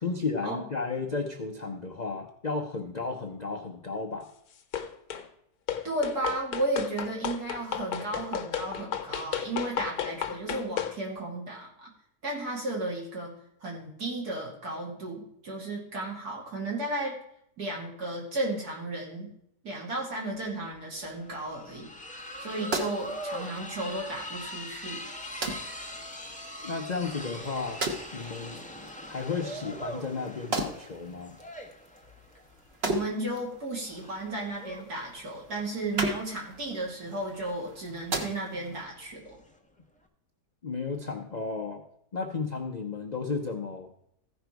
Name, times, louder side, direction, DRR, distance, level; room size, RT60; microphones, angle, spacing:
voice 1, 0.0-4.3 26.6-27.8 28.1-28.6 29.1-31.4 40.6-41.8 42.1-43.9, left 4 dB, 45° left, 2 dB, 0.5 m, -33 dB
sound 1, 4.7-5.3 5.7-11.0, left 9 dB, 65° left, 1.3 m, -33 dB
voice 2, 5.8-11.9 12.2-13.3 13.6-17.2 17.6-19.3 19.6-21.9 22.4-25.0 32.8-39.4, right 2 dB, 65° right, -3 dB, 3.2 m, -34 dB
sound 2, 20.4-20.5 20.7-39.6, left 1 dB, 5° left, 0.8 m, -42 dB
sound 3, 22.2-38.8, right 2 dB, 40° right, 1.2 m, -39 dB
15.0 x 5.3 x 4.6 m, 0.73 s
omnidirectional pair, 1.8 m